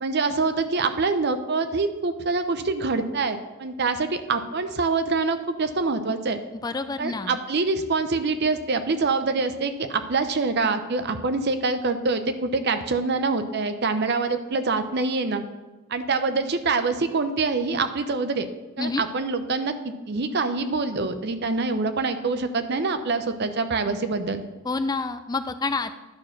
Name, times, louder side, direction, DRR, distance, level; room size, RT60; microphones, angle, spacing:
voice 1, 0.0-6.4 7.0-15.4 15.9-18.5 18.8-24.4, right 3 dB, 50° right, 9 dB, 0.6 m, -25 dB
voice 2, 6.5-7.4 18.8-19.0 24.6-25.9, left 3 dB, 20° left, 10 dB, 0.3 m, -28 dB
11.5 x 4.5 x 5.9 m, 1.2 s
head